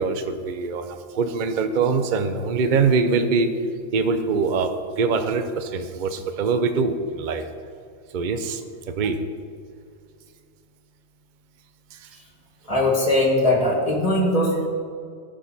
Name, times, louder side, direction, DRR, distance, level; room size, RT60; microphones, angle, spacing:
voice 1, 0.0-3.5 3.9-7.4 8.1-9.2 11.9-12.1, right 4 dB, 45° right, 8 dB, 0.7 m, -23 dB
voice 2, 12.7-14.7, left 1 dB, 25° left, -2 dB, 2.5 m, -20 dB
19.0 x 6.5 x 4.2 m, 2.2 s
omnidirectional pair, 1.4 m